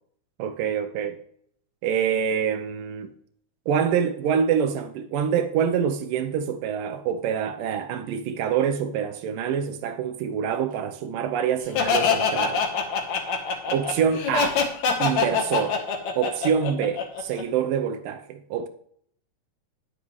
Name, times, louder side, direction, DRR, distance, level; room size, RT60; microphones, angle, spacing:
voice 1, 0.4-1.2 1.8-3.1 3.7-12.7 13.7-14.6 15.0-15.8 16.2-18.7, right 7 dB, 85° right, 2.5 m, -26 dB
Laughter, 11.8-17.4, left 5 dB, 65° left, 2.4 m, -24 dB
10.0 x 9.2 x 3.1 m
omnidirectional pair, 3.8 m